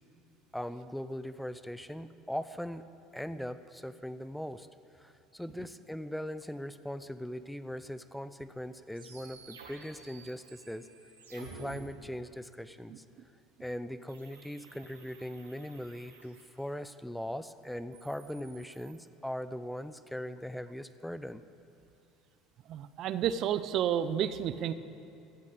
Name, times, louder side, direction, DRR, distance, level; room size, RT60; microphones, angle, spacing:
voice 1, 0.5-2.9 3.1-4.7 4.9-10.9 11.3-13.0 13.6-21.4, equal, 5° left, 13 dB, 0.5 m, -40 dB
sound 1, 8.9-11.8 14.1-16.9 17.7-19.0, right 5 dB, 85° right, 1.6 m, -53 dB
voice 2, 22.7-24.7, right 9 dB, 55° right, 13 dB, 0.6 m, -30 dB
15.0 x 8.4 x 8.6 m, 2.8 s
hypercardioid pair, 70°, 0 cm